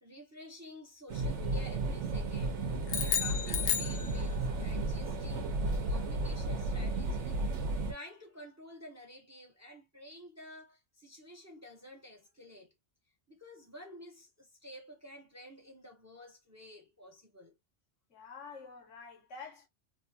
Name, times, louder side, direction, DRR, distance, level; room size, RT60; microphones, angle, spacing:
voice 1, 0.0-2.6 3.0-5.6 5.9-7.4 7.9-12.7 13.3-17.5, equal, 15° right, 0.6 m, -51 dB
sound 1, 1.1-7.9, right 2 dB, 75° right, 1.0 m, -33 dB
sound 2, 2.9-4.6, left 8 dB, 60° left, 0.5 m, -33 dB
voice 2, 18.1-19.7, left 4 dB, 90° left, 1.2 m, -48 dB
2.9 x 2.3 x 2.6 m
omnidirectional pair, 1.2 m